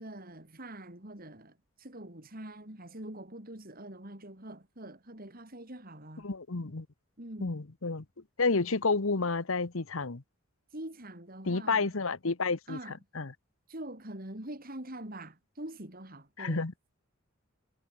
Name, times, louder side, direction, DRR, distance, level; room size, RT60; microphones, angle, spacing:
voice 1, 0.0-6.3 7.2-7.6 10.7-11.9 12.7-13.0 13.7-16.7, right 1 dB, 45° right, 4.5 m, -44 dB
voice 2, 6.2-6.9 7.4-8.0 8.4-10.2 11.5-13.3 16.4-16.7, left 3 dB, 70° left, 1.1 m, -30 dB
head